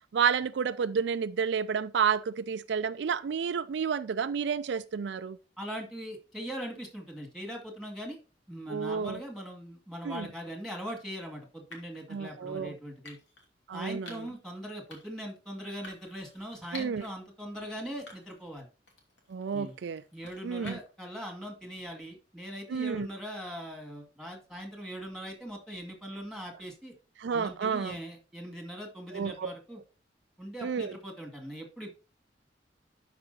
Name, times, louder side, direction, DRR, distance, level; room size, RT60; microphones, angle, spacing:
voice 1, 0.1-5.4 8.7-9.2 10.0-10.3 12.1-12.7 13.7-14.3 16.7-17.1 19.3-20.0 20.4-20.8 22.7-23.1 27.2-28.0 29.1-29.5 30.6-31.0, right 6 dB, 70° right, 0.4 m, -30 dB
voice 2, 5.6-8.2 8.5-13.2 13.7-18.7 19.5-19.7 20.1-26.9 27.3-29.8 30.4-31.9, equal, ahead, 2.1 m, -41 dB
sound 1, 10.4-10.6 11.7-12.0 13.0-13.5 14.1-14.4 14.9-15.2 15.8-17.1 17.5-17.6 18.1-18.5 18.9-21.1, left 2 dB, 80° left, 2.7 m, -50 dB
12.0 x 5.0 x 2.7 m
head